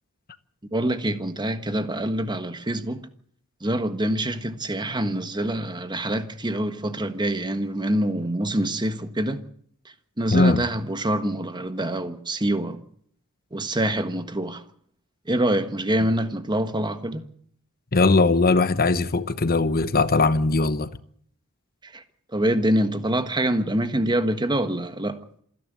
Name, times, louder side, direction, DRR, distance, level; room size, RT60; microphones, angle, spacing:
voice 1, 0.7-3.1 3.6-9.4 10.2-12.8 13.5-14.6 15.3-17.2 21.9-22.0 22.3-25.2, right 1 dB, 20° right, 1.4 m, -25 dB
voice 2, 10.3-10.6 17.9-20.9, left 3 dB, 45° left, 1.0 m, -20 dB
27.0 x 10.5 x 9.3 m
head